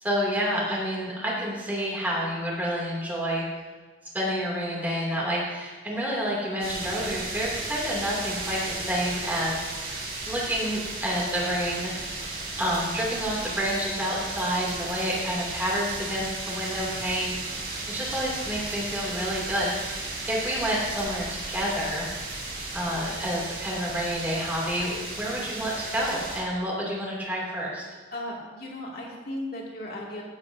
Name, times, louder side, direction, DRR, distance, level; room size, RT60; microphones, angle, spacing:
voice 1, 0.0-3.4 4.1-9.8 10.3-12.2 12.6-17.3 17.9-22.1 22.7-27.9, equal, 10° right, -5 dB, 2.8 m, -29 dB
sound 1, 6.6-26.4, right 2 dB, 60° right, 3.3 m, -35 dB
voice 2, 28.1-30.2, left 1 dB, 55° left, -3 dB, 2.6 m, -36 dB
16.5 x 8.8 x 2.8 m, 1.4 s
head